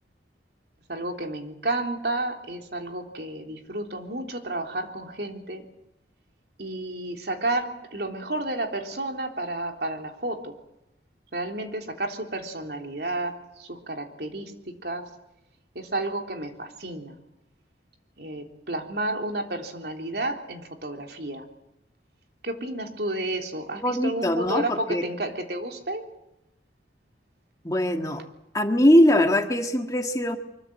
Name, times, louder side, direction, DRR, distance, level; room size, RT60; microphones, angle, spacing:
voice 1, 0.9-5.6 6.6-10.5 11.3-15.0 15.8-17.2 18.2-21.5 22.4-26.0, right 2 dB, 65° right, 3 dB, 3.4 m, -31 dB
voice 2, 23.8-25.0 27.6-28.2 28.5-30.4, left 1 dB, 20° left, 4 dB, 1.7 m, -21 dB
24.5 x 22.5 x 7.8 m, 0.88 s
head